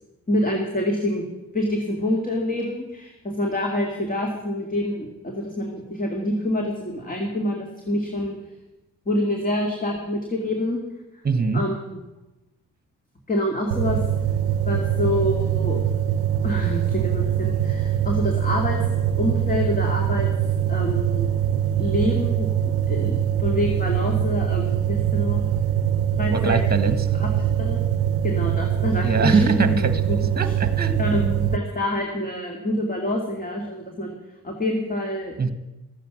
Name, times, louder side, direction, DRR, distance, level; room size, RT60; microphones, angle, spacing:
voice 1, 0.3-1.2 1.5-8.4 9.1-10.8 11.5-11.8 13.3-14.0 14.7-15.8 16.4-20.3 20.7-21.3 21.8-22.5 22.9-25.4 26.2-26.6 27.2-27.3 27.6-27.8 28.2-30.5 31.0-34.1 34.4-35.4, left 1 dB, 25° left, 1 dB, 2.3 m, -26 dB
voice 2, 11.2-11.6 26.3-27.1 29.0-31.0 35.4-35.5, right 4 dB, 25° right, 10 dB, 1.5 m, -23 dB
sound 1, 13.7-31.6, right 9 dB, 90° right, 0.7 m, -23 dB
13.5 x 9.1 x 6.1 m, 1.0 s
supercardioid pair, 60°, 35 cm